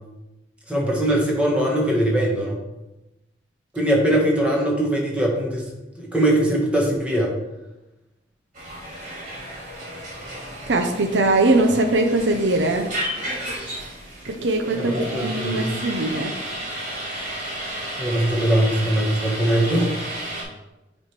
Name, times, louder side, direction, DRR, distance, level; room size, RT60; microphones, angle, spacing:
voice 1, 0.7-2.6 3.7-5.6 6.0-7.3 14.7-15.6 18.0-19.9, right 1 dB, 5° right, -2 dB, 1.3 m, -21 dB
sound 1, 8.5-20.4, right 1 dB, 45° right, 2.3 m, -33 dB
voice 2, 10.7-12.9 14.3-16.3, right 2 dB, 85° right, 3 dB, 0.6 m, -21 dB
8.7 x 3.3 x 4.5 m, 1.0 s
head